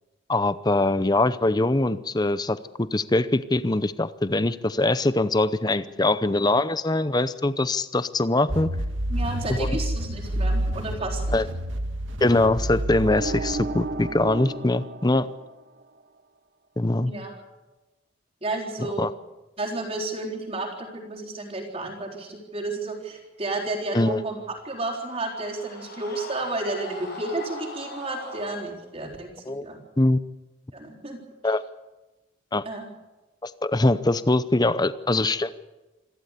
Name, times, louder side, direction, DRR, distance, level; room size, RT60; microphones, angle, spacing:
voice 1, 0.3-8.7 9.5-9.7 11.3-11.5 12.2-15.3 16.8-17.1 19.0-19.1 23.9-24.2 29.5-29.6 30.0-30.2 31.4-31.6 32.5-32.6 33.4-35.5, left 2 dB, 20° left, 14 dB, 0.7 m, -23 dB
sound 1, 8.5-14.4, right 1 dB, 70° right, 1.8 m, -29 dB
voice 2, 9.1-11.4 17.0-17.4 18.4-19.1 19.6-24.4 24.6-29.8 30.7-31.2 32.6-32.9, right 2 dB, 30° right, -1 dB, 4.0 m, -32 dB
sound 2, 13.0-16.0, right 3 dB, 45° right, 0.9 m, -34 dB
sound 3, 24.3-28.6, left 1 dB, 50° left, 7.7 m, -41 dB
28.0 x 13.0 x 8.3 m, 1.1 s
head